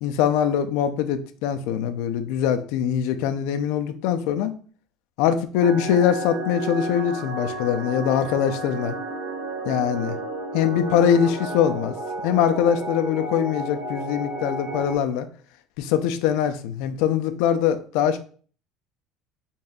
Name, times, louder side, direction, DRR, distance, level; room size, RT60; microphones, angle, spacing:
voice 1, 0.0-4.5 5.2-9.0 9.7-10.2 10.5-11.9 12.2-15.3 15.8-18.2, left 9 dB, 75° left, 8 dB, 0.4 m, -22 dB
sound 1, 5.6-15.0, right 2 dB, 30° right, 1.3 m, -32 dB
4.0 x 3.7 x 2.3 m, 0.43 s
cardioid pair, 145°, 0 cm